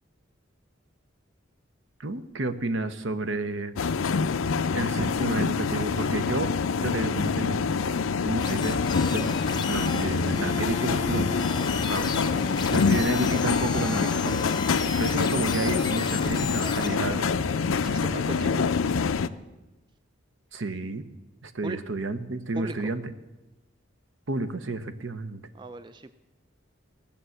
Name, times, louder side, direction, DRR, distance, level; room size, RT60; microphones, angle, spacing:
voice 1, 2.0-3.7 4.7-6.5 6.8-7.6 8.2-11.3 11.7-12.2 12.5-17.3 20.5-21.0 21.4-23.1 24.3-25.4, right 2 dB, 70° right, 11 dB, 0.9 m, -31 dB
sound 1, 3.8-19.3, left 5 dB, 90° left, 0.5 m, -26 dB
sound 2, 8.4-16.9, left 4 dB, 20° left, 0.7 m, -34 dB
voice 2, 16.6-18.6 21.6-21.8 22.5-22.9 25.6-26.1, right 2 dB, 25° right, 11 dB, 0.4 m, -38 dB
17.0 x 6.9 x 7.8 m, 1.1 s
head